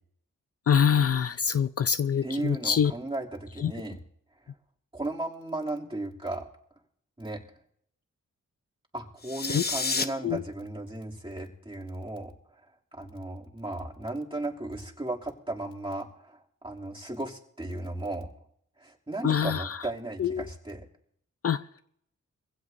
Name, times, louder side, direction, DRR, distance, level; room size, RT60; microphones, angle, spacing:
voice 1, 0.7-2.9 3.6-3.7 9.5-9.6 10.2-10.4 19.2-19.8 20.2-20.4 21.4-21.6, left 7 dB, 50° left, 13 dB, 0.5 m, -24 dB
voice 2, 2.2-4.0 4.9-6.5 7.2-7.4 8.9-12.3 12.9-18.3 18.8-20.8, right 2 dB, 15° right, -2 dB, 2.7 m, -35 dB
sound 1, 9.2-10.0, left 3 dB, 30° left, 1.0 m, -29 dB
22.5 x 16.0 x 2.7 m, 0.70 s
cardioid pair, 50°, 31 cm